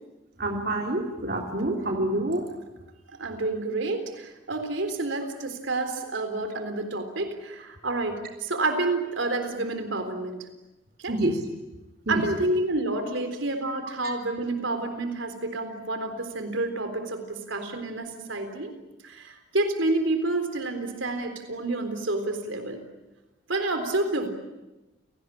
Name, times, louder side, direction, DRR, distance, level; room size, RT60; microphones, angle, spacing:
voice 1, 0.4-2.4 11.1-11.3 12.1-12.2 14.0-14.1, right 1 dB, 50° right, 1 dB, 3.4 m, -27 dB
voice 2, 3.2-10.4 11.0-11.2 12.1-18.7 19.0-22.8 23.5-24.3, right 2 dB, 75° right, 7 dB, 3.8 m, -29 dB
29.5 x 18.5 x 10.0 m, 1.0 s
head